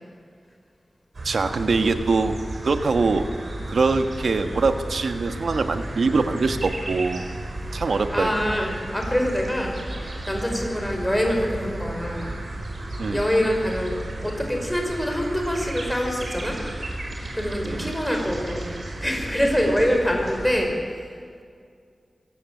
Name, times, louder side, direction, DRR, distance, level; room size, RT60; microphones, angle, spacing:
sound 1, 1.1-20.7, right 1 dB, 55° right, 5.2 m, -34 dB
voice 1, 1.2-2.3 2.6-3.3 3.7-7.3 7.7-8.6 13.0-13.2 17.6-18.0, right 4 dB, 80° right, 8 dB, 1.6 m, -23 dB
voice 2, 8.1-12.3 13.1-14.0 14.2-16.6 17.3-21.1, equal, 5° left, 1 dB, 5.4 m, -25 dB
24.0 x 16.5 x 8.5 m, 2.2 s
wide cardioid pair, 90°, 0 cm